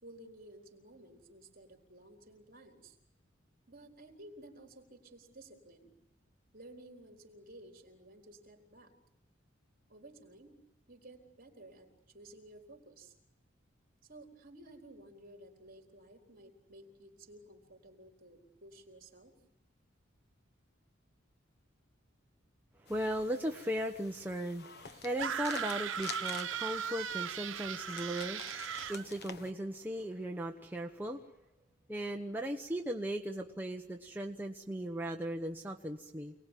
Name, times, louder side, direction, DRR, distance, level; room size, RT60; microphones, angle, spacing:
voice 1, 0.0-3.0 3.7-5.9 6.5-8.9 9.9-10.6 10.9-13.1 14.1-19.3, right 1 dB, 50° right, 3 dB, 4.4 m, -55 dB
voice 2, 22.8-31.2 31.9-36.3, right 1 dB, 10° right, 1 dB, 1.2 m, -37 dB
sound 1, 22.9-29.5, left 6 dB, 55° left, 1.4 m, -49 dB
sound 2, 25.2-29.0, right 8 dB, 85° right, 1.0 m, -38 dB
28.5 x 20.0 x 9.3 m, 0.89 s
head